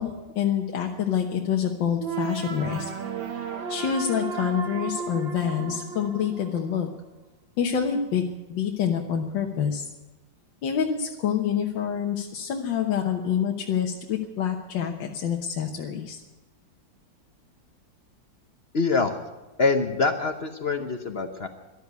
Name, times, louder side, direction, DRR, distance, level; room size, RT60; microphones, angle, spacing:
voice 1, 0.0-2.9 3.7-6.9 7.6-8.2 8.5-9.9 10.6-16.2, left 8 dB, 75° left, 1 dB, 1.7 m, -27 dB
sound 1, 2.0-7.0, right 5 dB, 80° right, 2.1 m, -34 dB
voice 2, 18.7-19.2 19.6-21.5, left 4 dB, 45° left, 6 dB, 0.9 m, -24 dB
13.0 x 12.0 x 8.2 m, 1.1 s
omnidirectional pair, 2.0 m